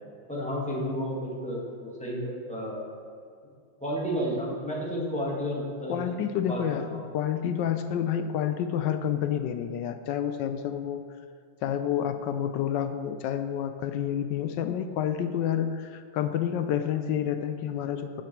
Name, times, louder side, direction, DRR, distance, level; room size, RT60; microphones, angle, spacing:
voice 1, 0.3-2.8 3.8-6.0 6.4-7.0, equal, 5° left, -5 dB, 1.6 m, -32 dB
voice 2, 5.9-6.9 7.1-11.0 11.6-18.2, left 9 dB, 75° left, 8 dB, 1.1 m, -29 dB
10.5 x 6.3 x 4.5 m, 2.3 s
omnidirectional pair, 2.3 m